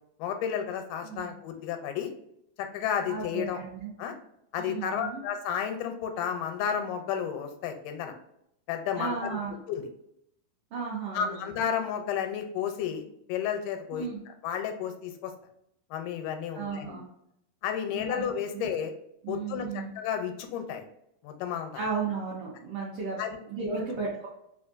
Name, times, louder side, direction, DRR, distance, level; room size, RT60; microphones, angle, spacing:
voice 1, 0.2-2.1 2.6-3.6 4.0-4.1 4.5-8.1 8.7-9.4 9.7-9.8 11.1-13.0 13.3-15.3 15.9-17.0 17.6-18.9 19.3-20.9 21.2-21.8 23.2-23.4 23.7-23.8, left 8 dB, 90° left, 6 dB, 2.1 m, -32 dB
voice 2, 3.1-3.9 4.6-5.2 8.9-9.5 10.7-11.5 13.9-14.2 16.5-17.1 17.9-18.2 18.5-18.7 19.2-19.9 21.7-23.2 23.5-24.3, right 5 dB, 80° right, -5 dB, 1.3 m, -34 dB
4.8 x 2.4 x 2.4 m, 0.76 s
omnidirectional pair, 3.6 m